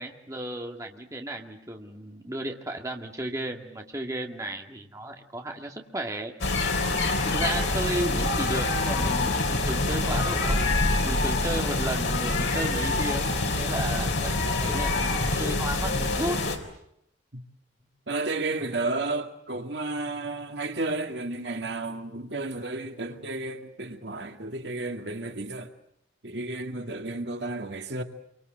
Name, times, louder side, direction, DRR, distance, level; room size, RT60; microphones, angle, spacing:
voice 1, 0.0-6.3 7.2-10.6 11.0-16.4, right 1 dB, 20° right, 2.1 m, -34 dB
sound 1, 6.4-16.6, left 2 dB, 80° left, 3.7 m, -26 dB
voice 2, 18.1-25.7 26.2-28.0, right 2 dB, 65° right, 2.0 m, -32 dB
26.5 x 24.0 x 7.9 m
head